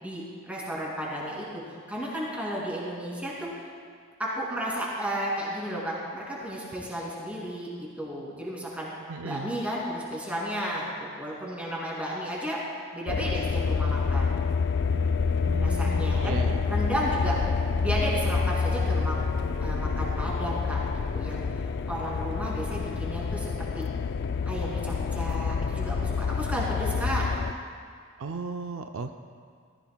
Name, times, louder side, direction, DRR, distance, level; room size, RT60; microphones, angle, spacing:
voice 1, 0.0-3.5 4.2-8.9 9.2-12.6 12.9-14.3 15.6-16.4 16.7-17.4 17.8-19.2 19.6-20.8 21.1-21.4 21.9-23.9 24.5-27.2, equal, 5° right, -5 dB, 2.6 m, -33 dB
voice 2, 9.1-9.5 15.4-16.6 28.2-29.2, right 4 dB, 70° right, 6 dB, 0.5 m, -36 dB
sound 1, 13.1-27.5, left 5 dB, 55° left, 0.4 m, -27 dB
15.0 x 14.5 x 2.3 m, 2.1 s
head